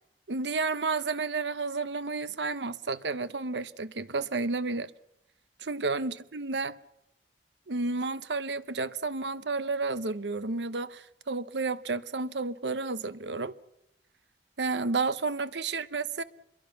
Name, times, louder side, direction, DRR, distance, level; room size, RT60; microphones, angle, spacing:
voice 1, 0.3-4.9 5.6-6.8 7.7-13.5 14.6-16.2, right 3 dB, 85° right, 0.9 m, -31 dB
27.0 x 22.5 x 5.9 m
head